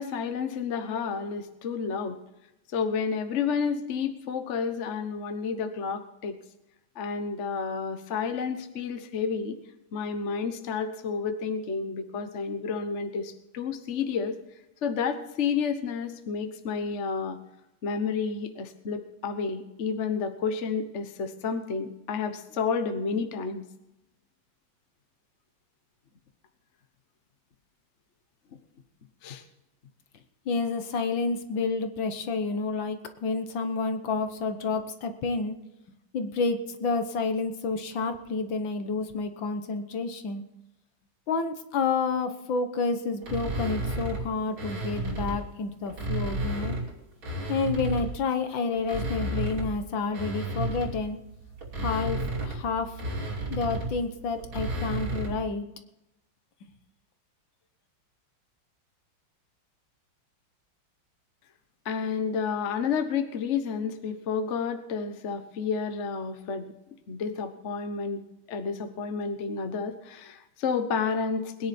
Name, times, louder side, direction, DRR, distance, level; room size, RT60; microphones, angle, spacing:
voice 1, 0.0-2.2 2.7-6.4 6.9-9.6 9.9-14.4 14.8-17.4 17.8-23.7 29.2-29.4 61.8-66.7 67.1-71.7, left 5 dB, 40° left, 8 dB, 1.3 m, -30 dB
voice 2, 30.5-35.5 36.1-40.4 41.3-46.8 47.5-51.2 51.8-53.0 53.5-55.7, left 4 dB, 70° left, 8 dB, 1.8 m, -29 dB
sound 1, 43.2-45.4 45.9-48.3 48.7-55.5, right 1 dB, 70° right, 3.6 m, -33 dB
21.0 x 10.5 x 4.3 m, 0.89 s
omnidirectional pair, 2.2 m